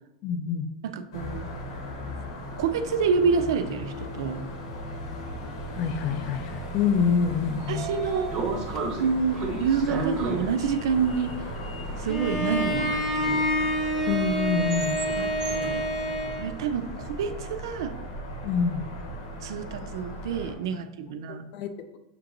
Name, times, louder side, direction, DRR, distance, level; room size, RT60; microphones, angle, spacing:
voice 1, 0.2-0.7 5.7-7.8 9.9-10.0 14.1-15.0 18.4-18.9 21.3-22.0, left 6 dB, 35° left, 8 dB, 0.4 m, -26 dB
voice 2, 0.8-1.5 2.6-4.5 7.7-8.3 9.0-11.5 12.0-13.4 15.2-15.9 16.3-18.0 19.1-21.5, right 6 dB, 75° right, 9 dB, 0.4 m, -28 dB
sound 1, 1.1-20.5, equal, 85° left, 1.1 m, -37 dB
Sliding door, 7.2-17.3, right 3 dB, 25° right, 0.6 m, -36 dB
Bowed string instrument, 12.1-16.5, equal, 10° left, 0.7 m, -27 dB
6.8 x 2.9 x 2.5 m, 0.98 s
supercardioid pair, 170°, 3 cm